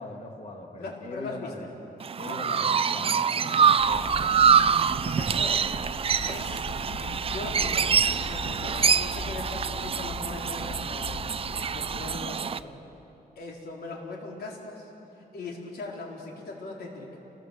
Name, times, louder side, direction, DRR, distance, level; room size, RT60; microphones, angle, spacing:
voice 1, 0.0-1.7 2.2-4.6, left 2 dB, 45° left, 1 dB, 2.9 m, -41 dB
voice 2, 0.8-1.7 2.3-2.5 5.0-5.7 6.2-8.0 8.3-11.3 11.7-12.7 13.4-14.9 15.2-17.2, left 3 dB, 90° left, -1 dB, 4.5 m, -40 dB
Chirp tweet, 2.0-12.6, right 6 dB, 35° right, 0.5 m, -25 dB
sound 1, 3.8-12.2, left 3 dB, 20° left, 1.5 m, -40 dB
29.0 x 19.5 x 8.0 m, 2.9 s
wide cardioid pair, 140°, 16 cm